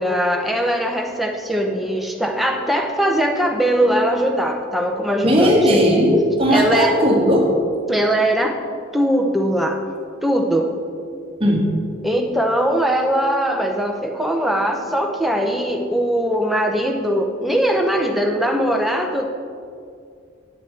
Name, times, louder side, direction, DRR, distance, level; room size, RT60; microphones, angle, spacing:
voice 1, 0.0-5.8 6.5-7.0 7.9-8.6 8.9-9.8 10.2-10.7 12.0-19.3, equal, ahead, 1 dB, 0.7 m, -20 dB
voice 2, 5.2-7.6 11.4-11.7, equal, 25° right, 0 dB, 1.4 m, -16 dB
8.6 x 5.4 x 7.8 m, 2.3 s
head